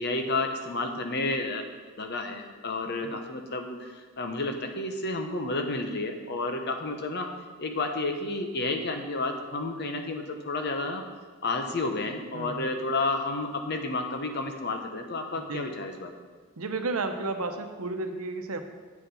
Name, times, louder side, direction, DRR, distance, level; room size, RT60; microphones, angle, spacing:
voice 1, 0.0-1.6 2.0-7.3 7.6-11.0 11.4-16.1, left 2 dB, 50° left, 5 dB, 1.0 m, -31 dB
voice 2, 12.3-12.7 15.4-15.7 16.6-18.6, right 3 dB, 80° right, 6 dB, 0.9 m, -33 dB
8.7 x 7.3 x 5.5 m, 1.5 s
head